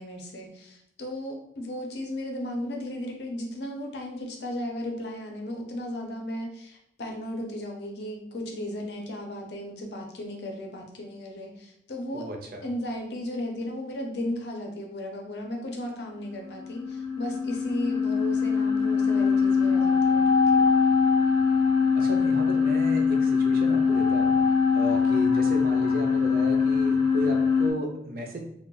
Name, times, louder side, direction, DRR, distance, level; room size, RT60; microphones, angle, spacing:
voice 1, 0.0-12.3 12.6-20.7, left 1 dB, 65° left, 1 dB, 0.6 m, -35 dB
voice 2, 12.1-12.7 21.9-24.4 24.7-28.4, equal, 50° right, 3 dB, 0.4 m, -34 dB
sound 1, 16.4-27.7, left 5 dB, 15° left, 0.4 m, -22 dB
2.3 x 2.1 x 3.8 m, 0.73 s
head